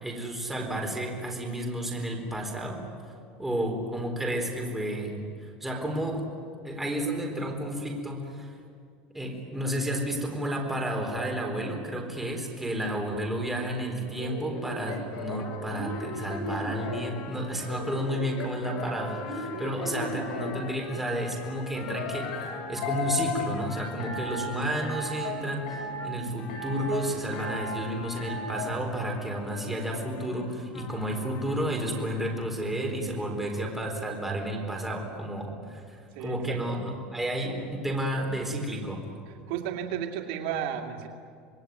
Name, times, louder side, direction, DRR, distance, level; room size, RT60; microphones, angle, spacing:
voice 1, 0.0-2.8 3.4-5.2 5.6-6.3 6.6-8.5 9.1-22.3 22.7-25.7 26.0-39.1, right 1 dB, 5° right, 1 dB, 4.1 m, -31 dB
sound 1, 14.2-17.1 17.7-20.6 21.9-23.5 24.0-24.5 24.8-25.4 25.7-26.1 26.5-27.0 27.3-27.8 28.2-28.7, left 2 dB, 70° left, 7.1 m, -35 dB
sound 2, 15.4-32.5, left 8 dB, 45° left, 2.9 m, -45 dB
sound 3, 22.4-32.5, left 4 dB, 20° left, 7.1 m, -49 dB
voice 2, 36.1-36.6 39.5-41.1, right 9 dB, 70° right, 3 dB, 2.5 m, -33 dB
26.5 x 20.5 x 9.6 m, 2.4 s
cardioid pair, 155°, 4 cm